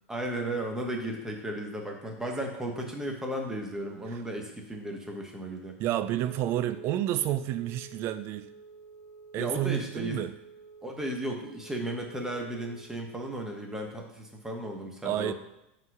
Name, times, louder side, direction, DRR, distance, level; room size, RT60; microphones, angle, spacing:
voice 1, 0.1-5.8 9.4-10.2 10.8-15.3, right 1 dB, 5° right, 2 dB, 1.0 m, -35 dB
Wind instrument woodwind instrument, 5.8-12.9, right 2 dB, 55° left, 1.3 m, -50 dB
voice 2, 5.8-8.5 9.3-10.3 15.1-15.3, right 12 dB, 40° right, 12 dB, 0.4 m, -30 dB
5.4 x 4.0 x 6.1 m, 0.88 s
supercardioid pair, 135°, 7 cm